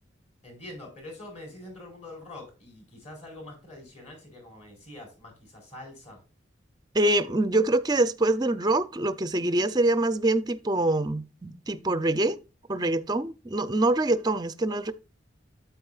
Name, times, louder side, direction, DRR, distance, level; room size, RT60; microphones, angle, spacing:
voice 1, 0.4-6.2, left 1 dB, 35° left, 4.6 m, -45 dB
voice 2, 6.9-12.4 12.7-14.9, right 2 dB, 20° right, 0.5 m, -25 dB
9.3 x 8.3 x 2.4 m
head